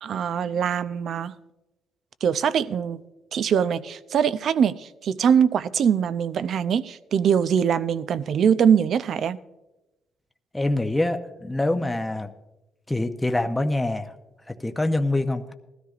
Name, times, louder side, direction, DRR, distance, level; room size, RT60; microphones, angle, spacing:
voice 1, 0.0-1.3 2.2-3.0 3.3-9.4, right 7 dB, 60° right, 14 dB, 0.5 m, -22 dB
voice 2, 10.5-12.3 12.9-14.1 14.5-15.5, left 2 dB, 10° left, 6 dB, 0.6 m, -25 dB
19.5 x 13.5 x 2.5 m, 1.0 s
cardioid pair, 125°, 0 cm